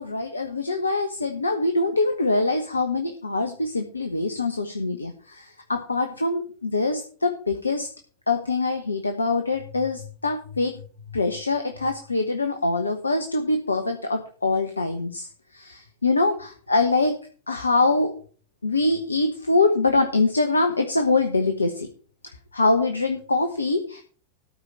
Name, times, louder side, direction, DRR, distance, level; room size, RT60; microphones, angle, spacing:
voice 1, 0.0-7.9 8.3-10.7 11.1-17.2 17.5-18.1 18.6-21.9 22.5-24.0, left 3 dB, 80° left, 6 dB, 1.2 m, -24 dB
13.0 x 5.0 x 7.1 m, 0.42 s
figure-of-eight pair, 90°, 0 cm